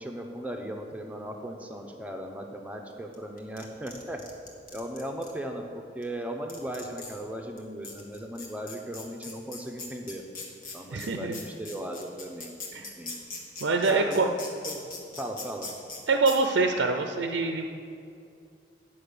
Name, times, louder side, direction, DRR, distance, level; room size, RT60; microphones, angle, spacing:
voice 1, 0.0-4.2 4.7-10.2 10.7-13.1 13.9-14.8 15.2-15.7, right 1 dB, 10° right, 2 dB, 0.7 m, -37 dB
sound 1, 3.1-5.3 6.0-6.1 6.5-7.2 7.6-7.7 7.8-16.0 16.3-16.4, left 4 dB, 45° left, 1.3 m, -40 dB
voice 2, 10.9-11.4 12.7-12.9 13.6-14.3 16.1-17.7, right 3 dB, 80° right, 5 dB, 0.5 m, -25 dB
9.8 x 5.5 x 6.8 m, 2.5 s
head